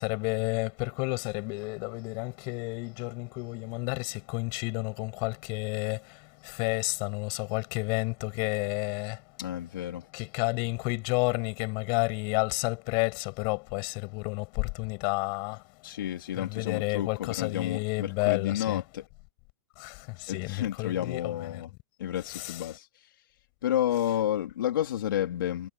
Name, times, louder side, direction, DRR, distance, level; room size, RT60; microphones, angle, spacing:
voice 1, 0.0-6.0 6.5-9.2 10.1-15.6 16.4-18.8 19.8-19.9 20.3-21.6 22.3-22.6, left 32 dB, 45° left, 7.7 m, -31 dB
voice 2, 9.4-10.1 15.8-19.0 20.3-21.7 22.0-23.1 23.6-25.7, left 11 dB, 80° left, 3.3 m, -31 dB
hypercardioid pair, 135°, 11 cm